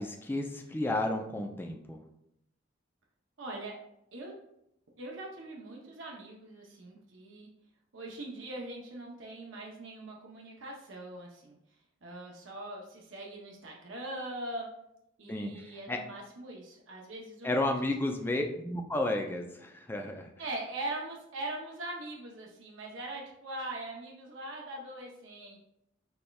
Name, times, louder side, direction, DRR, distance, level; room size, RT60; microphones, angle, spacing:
voice 1, 0.0-2.0 15.3-15.5 15.9-16.0 17.4-20.3, left 1 dB, 10° left, 3 dB, 0.4 m, -32 dB
voice 2, 3.4-3.8 4.1-4.3 5.0-7.5 7.9-11.6 12.0-14.7 15.2-17.5 17.8-17.9 20.4-25.6, right 2 dB, 75° right, -1 dB, 0.7 m, -41 dB
4.2 x 3.3 x 2.3 m, 0.78 s
head